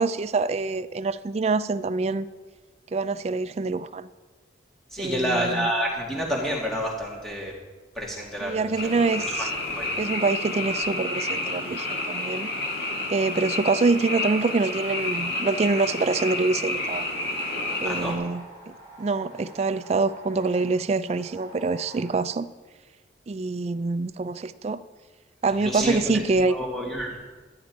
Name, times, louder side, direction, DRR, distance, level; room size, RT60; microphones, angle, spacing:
voice 1, 0.0-2.3 2.9-4.1 5.0-5.7 8.4-9.5 10.0-12.5 13.1-17.1 17.8-22.5 23.3-24.8 25.4-26.6, right 3 dB, 35° right, 14 dB, 0.3 m, -25 dB
voice 2, 4.9-7.5 7.9-8.9 9.4-9.9 17.8-18.1 25.6-27.2, equal, ahead, -4 dB, 2.3 m, -29 dB
Frog, 8.8-18.1, left 2 dB, 55° left, 2.0 m, -30 dB
sound 1, 11.1-16.2 16.8-22.2, right 2 dB, 20° left, 3.1 m, -49 dB
12.0 x 10.5 x 4.6 m, 1.3 s
head